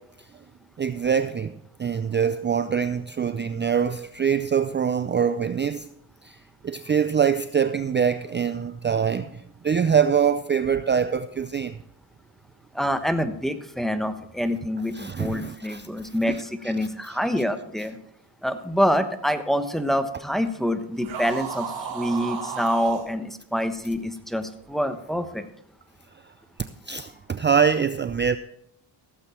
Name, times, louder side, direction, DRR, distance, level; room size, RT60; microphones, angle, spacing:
voice 1, 0.8-5.9 6.2-11.8 14.9-16.7 17.0-17.2 22.1-22.2 26.1-26.3 26.6-28.4, right 7 dB, 25° right, 0.4 m, -24 dB
voice 2, 12.7-18.0 18.4-25.4, equal, ahead, 1.1 m, -26 dB
sound 1, 21.0-23.1, right 5 dB, 75° right, 4.2 m, -33 dB
16.0 x 7.9 x 4.4 m
cardioid pair, 90°, 45 cm